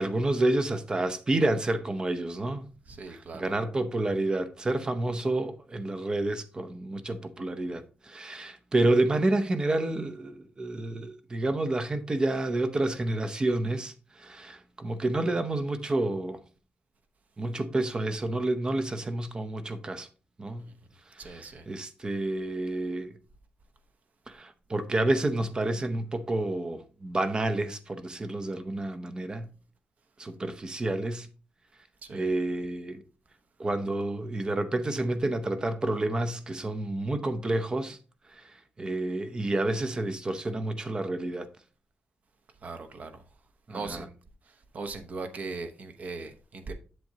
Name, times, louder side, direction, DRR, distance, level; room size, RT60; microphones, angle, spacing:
voice 1, 0.0-2.6 3.1-13.9 14.2-16.4 17.4-20.1 20.4-20.7 21.2-23.1 24.3-29.5 30.2-31.3 32.1-33.0 33.6-38.0 38.3-38.5 38.8-41.5 43.7-44.1, right 2 dB, 25° right, 0.6 m, -29 dB
voice 2, 2.9-3.5 21.2-21.6 32.1-32.3 42.6-43.1 43.7-44.1 44.7-46.7, right 3 dB, 45° right, 0.9 m, -39 dB
7.9 x 7.6 x 2.8 m
wide cardioid pair, 165°, 4 cm